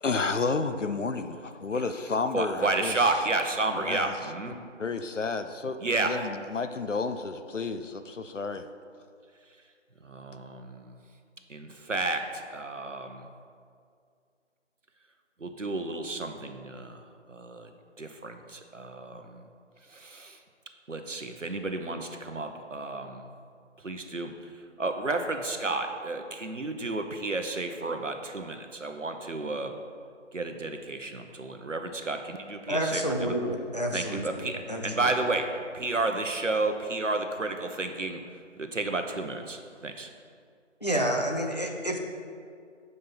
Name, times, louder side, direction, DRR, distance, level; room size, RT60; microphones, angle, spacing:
voice 1, 0.0-3.1 3.7-4.2 4.8-8.7, left 4 dB, 75° left, 0.7 m, -31 dB
voice 2, 2.3-4.6 5.8-6.2 10.0-10.9 11.5-13.3 15.4-17.7 18.0-19.4 19.9-20.4 20.9-23.3 23.8-24.3 24.8-29.7 30.3-33.0 33.9-38.2 38.6-40.1, right 2 dB, 80° right, 1.0 m, -31 dB
voice 3, 32.7-35.1 40.8-42.0, right 1 dB, 35° left, 0.7 m, -29 dB
7.6 x 5.5 x 5.9 m
figure-of-eight pair, 165°, 37 cm